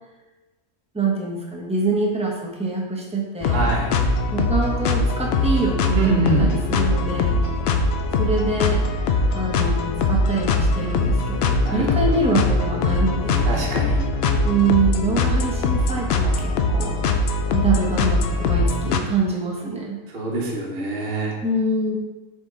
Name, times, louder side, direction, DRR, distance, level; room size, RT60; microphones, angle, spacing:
voice 1, 0.9-3.7 4.3-7.4 8.2-13.6 14.4-16.9 17.5-20.0 21.4-22.0, right 3 dB, 5° right, -2 dB, 0.7 m, -25 dB
sound 1, 3.4-19.0, left 2 dB, 80° left, 0.5 m, -21 dB
voice 2, 3.5-4.0 5.9-6.5 11.6-12.2 13.4-14.0 20.1-21.4, right 2 dB, 40° right, -2 dB, 1.2 m, -25 dB
6.9 x 4.0 x 3.8 m, 1.2 s
omnidirectional pair, 1.7 m